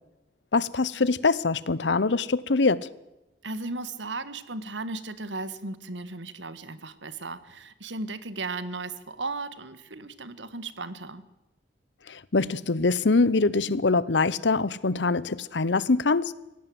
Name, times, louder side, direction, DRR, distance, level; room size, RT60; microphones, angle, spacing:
voice 1, 0.5-2.9 12.1-16.3, left 3 dB, 70° left, 0.9 m, -24 dB
voice 2, 3.4-11.2, right 3 dB, 80° right, 1.6 m, -36 dB
25.0 x 17.5 x 7.9 m
head